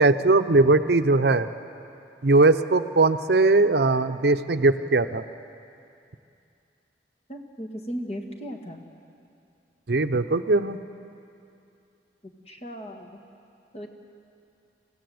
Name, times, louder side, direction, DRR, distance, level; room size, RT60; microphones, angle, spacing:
voice 1, 0.0-1.5 2.2-5.2 9.9-10.8, right 3 dB, 70° right, 10 dB, 0.7 m, -20 dB
voice 2, 7.3-8.8 12.2-13.2 13.7-13.9, equal, 35° left, 3 dB, 1.8 m, -36 dB
26.0 x 16.0 x 7.9 m, 2.6 s
head